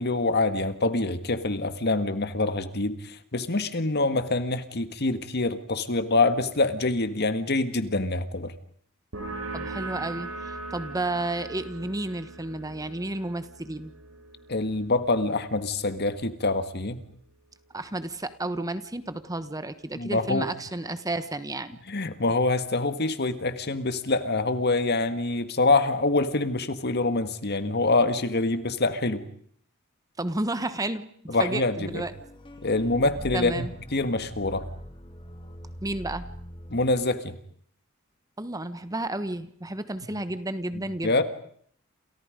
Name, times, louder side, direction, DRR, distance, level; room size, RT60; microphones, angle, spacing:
voice 1, 0.0-8.5 14.5-17.0 19.9-20.5 21.9-29.2 31.3-32.0 32.6-33.7 33.9-34.7 36.7-37.4 41.0-41.2, left 2 dB, 50° left, 11 dB, 1.8 m, -25 dB
sound 1, 9.1-16.4, right 3 dB, 85° right, 4.5 m, -40 dB
voice 2, 9.5-13.9 17.7-21.8 30.2-31.1 31.4-32.1 33.3-33.7 35.8-36.2 38.4-41.2, right 2 dB, 15° right, 12 dB, 1.2 m, -32 dB
sound 2, 31.8-37.0, equal, 25° left, 2.1 m, -42 dB
28.5 x 28.5 x 5.2 m, 0.62 s
head